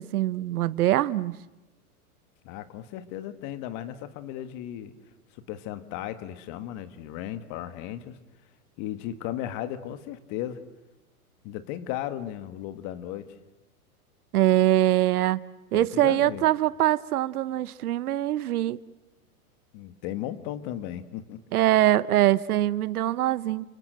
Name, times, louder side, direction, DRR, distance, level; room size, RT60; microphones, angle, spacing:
voice 1, 0.0-1.4 14.3-15.4 15.7-18.8 21.5-23.7, right 14 dB, 75° right, 1.0 m, -23 dB
voice 2, 2.4-4.9 5.3-8.2 8.8-10.6 11.4-13.3 15.7-16.4 19.7-21.4, left 12 dB, 40° left, 1.7 m, -35 dB
29.5 x 25.5 x 7.9 m
hypercardioid pair, 135°, 45 cm